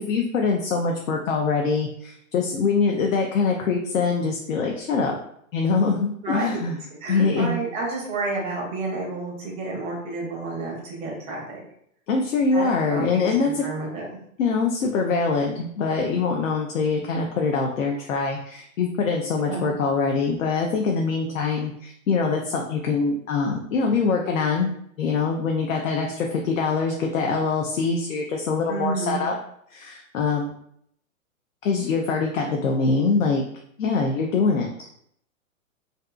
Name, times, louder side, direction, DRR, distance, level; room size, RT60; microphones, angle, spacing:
voice 1, 0.0-5.2 5.5-6.8 7.1-7.6 12.1-13.6 14.4-24.7 25.0-29.4 29.7-30.5 31.6-33.4 33.8-34.7, left 4 dB, 70° left, 1 dB, 0.5 m, -24 dB
voice 2, 6.2-6.6 7.0-11.6 12.5-14.1 19.5-19.7 28.7-29.3, right 3 dB, 15° right, -2 dB, 0.5 m, -30 dB
2.5 x 2.5 x 2.3 m, 0.70 s
hypercardioid pair, 120°, 41 cm